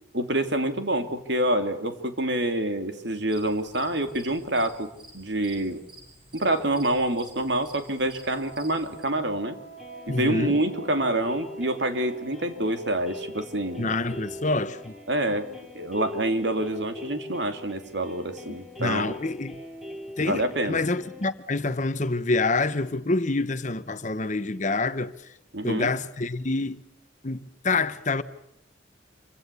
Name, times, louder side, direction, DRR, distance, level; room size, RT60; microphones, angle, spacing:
voice 1, 0.1-4.9 5.1-5.8 6.3-9.6 10.1-13.8 15.1-15.5 15.7-19.2 20.3-20.8 25.5-25.9, right 1 dB, 60° right, 2.8 m, -27 dB
sound 1, 3.3-9.0, right 2 dB, 25° right, 7.7 m, -51 dB
Wind instrument woodwind instrument, 8.2-15.5, right 4 dB, 80° right, 5.8 m, -47 dB
sound 2, 9.8-21.3, left 1 dB, ahead, 3.6 m, -42 dB
voice 2, 10.1-10.6 13.8-15.0 18.8-19.6 20.2-25.3 25.6-26.8 27.2-28.2, left 3 dB, 40° left, 1.1 m, -27 dB
27.5 x 25.0 x 6.9 m
head